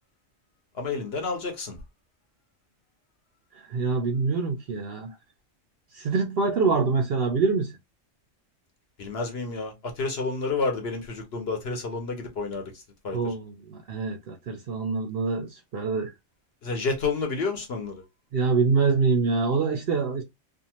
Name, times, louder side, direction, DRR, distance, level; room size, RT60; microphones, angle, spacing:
voice 1, 0.8-1.7 9.0-13.3 16.6-18.0, left 4 dB, 55° left, 1.0 m, -30 dB
voice 2, 3.7-5.1 5.9-7.7 13.1-16.1 18.3-20.2, right 4 dB, 60° right, 0.7 m, -25 dB
2.6 x 2.4 x 2.8 m
omnidirectional pair, 1.3 m